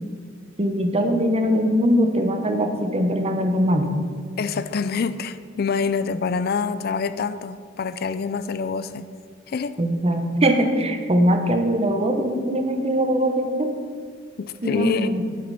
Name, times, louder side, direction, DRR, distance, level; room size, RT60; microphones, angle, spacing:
voice 1, 0.6-3.9 9.8-13.7 14.6-15.2, equal, 35° right, 6 dB, 0.9 m, -21 dB
voice 2, 4.4-9.1 9.5-9.8 14.4-15.1, left 5 dB, 55° left, 13 dB, 0.4 m, -26 dB
8.4 x 8.0 x 5.6 m, 2.1 s
head